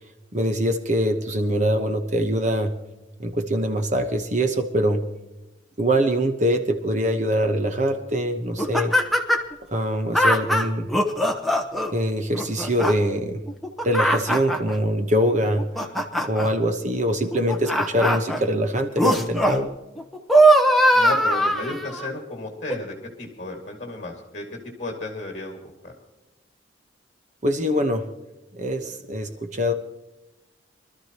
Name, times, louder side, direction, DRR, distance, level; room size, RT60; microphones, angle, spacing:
voice 1, 0.3-2.7 3.2-5.0 5.8-8.9 9.7-10.9 11.9-13.4 13.8-15.7 16.2-19.7 27.4-28.1 28.5-29.7, equal, 40° right, 6 dB, 1.1 m, -23 dB
sound 1, 8.6-9.5 10.1-11.9 12.3-12.9 13.5-14.7 15.4-16.5 17.3-18.4 19.0-19.6 20.0-22.1 22.7-22.8, right 1 dB, ahead, 1.0 m, -20 dB
voice 2, 20.9-24.4 24.8-25.9, left 2 dB, 40° left, 1 dB, 2.2 m, -33 dB
24.5 x 13.0 x 3.0 m, 1.0 s
head